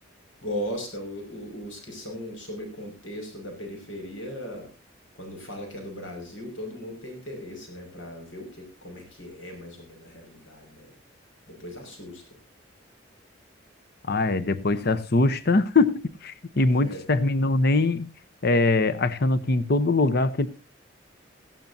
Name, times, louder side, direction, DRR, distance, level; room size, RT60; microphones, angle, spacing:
voice 1, 0.4-4.7 5.2-10.9 11.6-12.2 16.8-17.0, equal, 90° left, 4 dB, 5.6 m, -37 dB
voice 2, 14.1-18.1 18.4-20.5, left 2 dB, 55° left, 13 dB, 0.8 m, -22 dB
17.5 x 14.5 x 2.7 m, 0.32 s
head